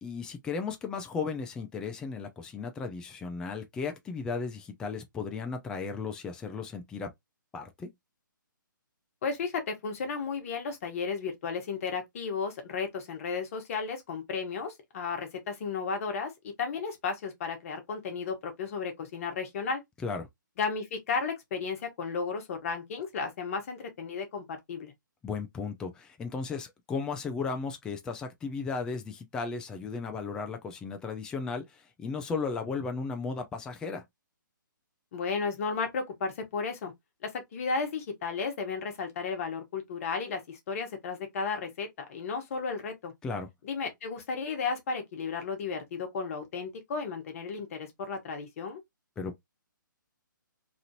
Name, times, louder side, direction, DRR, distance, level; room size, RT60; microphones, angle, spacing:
voice 1, 0.0-7.1 7.5-7.9 20.0-20.3 25.2-34.0 43.2-43.5 49.2-49.4, left 4 dB, 5° left, 0.3 m, -35 dB
voice 2, 9.2-19.8 20.6-24.9 35.1-36.9 37.2-43.1 43.6-48.8, left 5 dB, 45° left, 1.0 m, -34 dB
2.9 x 2.5 x 2.7 m
hypercardioid pair, 145°, 11 cm